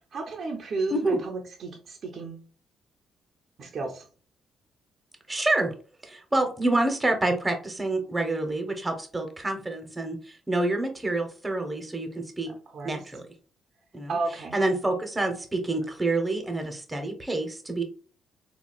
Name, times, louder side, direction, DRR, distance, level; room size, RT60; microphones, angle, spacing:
voice 1, 0.1-2.5 3.6-4.1 12.5-13.0 14.1-14.6, right 3 dB, 55° right, 2 dB, 0.6 m, -33 dB
voice 2, 5.3-5.7 6.0-12.5 12.8-13.3 13.9-14.2 14.5-17.8, right 2 dB, 15° right, 4 dB, 0.8 m, -27 dB
4.0 x 2.3 x 2.3 m, 0.38 s
cardioid pair, 90°, 0 cm